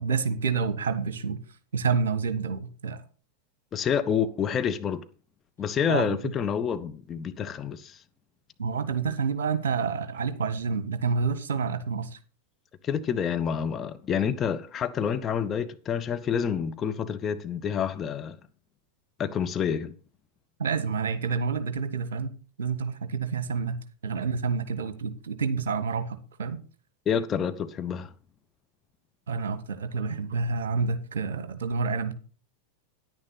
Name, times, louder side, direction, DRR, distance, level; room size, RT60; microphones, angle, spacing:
voice 1, 0.0-1.4 1.7-3.0 5.9-6.3 8.6-12.2 20.6-23.8 24.0-26.6 29.3-32.1, right 5 dB, 60° right, 1.3 m, -28 dB
voice 2, 3.7-5.0 5.6-8.0 12.8-18.4 19.2-19.9 27.1-28.1, left 7 dB, 25° left, 0.9 m, -28 dB
10.0 x 9.7 x 4.1 m
figure-of-eight pair, 90°, 0 cm